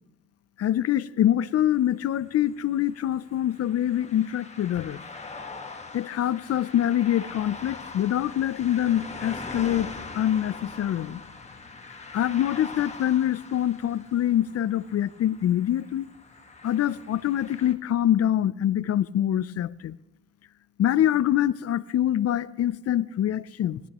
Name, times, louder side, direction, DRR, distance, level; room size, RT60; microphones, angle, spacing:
voice 1, 0.6-5.0 5.9-11.2 12.1-16.1 16.6-20.0 20.8-23.8, left 11 dB, 55° left, 0.6 m, -25 dB
sound 1, 1.7-17.7, left 3 dB, 20° left, 1.5 m, -42 dB
19.0 x 12.0 x 3.0 m
cardioid pair, 90°, 30 cm